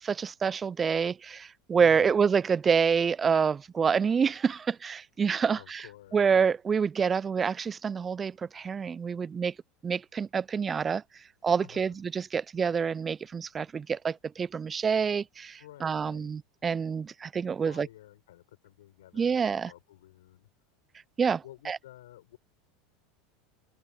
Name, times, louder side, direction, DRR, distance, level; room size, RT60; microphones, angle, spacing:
voice 1, 0.0-5.8 6.1-9.5 9.8-11.0 11.4-17.9 19.2-19.7 21.2-21.8, right 6 dB, 25° right, 0.3 m, -27 dB
voice 2, 1.8-2.2 5.5-6.3 11.6-12.0 15.6-16.3 17.3-20.5 21.4-22.4, left 14 dB, 75° left, 7.0 m, -52 dB
open air
hypercardioid pair, 80°, 0 cm